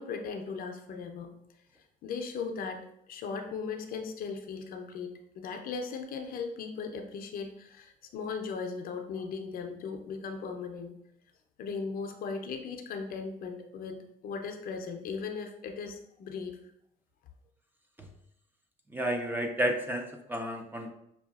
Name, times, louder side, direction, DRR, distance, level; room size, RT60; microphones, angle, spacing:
voice 1, 0.0-1.3 2.0-2.8 3.1-11.0 11.6-16.6, left 5 dB, 60° left, 5 dB, 0.5 m, -38 dB
voice 2, 18.9-20.9, right 1 dB, 10° right, 3 dB, 0.5 m, -31 dB
5.5 x 2.3 x 2.3 m, 0.76 s
cardioid pair, 110°, 17 cm